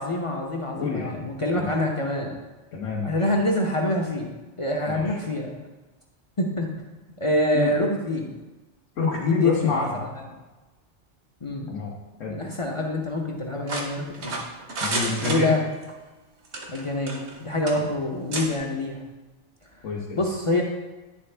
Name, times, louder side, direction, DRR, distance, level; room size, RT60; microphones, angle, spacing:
voice 1, 0.0-2.4 3.0-4.3 4.6-5.5 6.4-6.7 7.2-8.3 9.0-10.2 11.4-11.7 12.3-14.3 15.2-15.6 16.7-19.0 20.2-20.6, left 1 dB, 35° left, -1 dB, 0.5 m, -26 dB
voice 2, 0.8-1.2 1.5-1.7 2.7-3.2 4.9-5.2 7.5-7.7 9.0-10.1 11.7-11.9 12.2-12.4 14.8-15.5 19.8-20.2, left 4 dB, 85° left, -4 dB, 1.3 m, -27 dB
sound 1, 13.7-15.9 16.4-17.4 17.7-17.8 18.3-18.5, right 2 dB, 65° right, 1.2 m, -30 dB
10.0 x 3.4 x 3.3 m, 1.1 s
omnidirectional pair, 1.3 m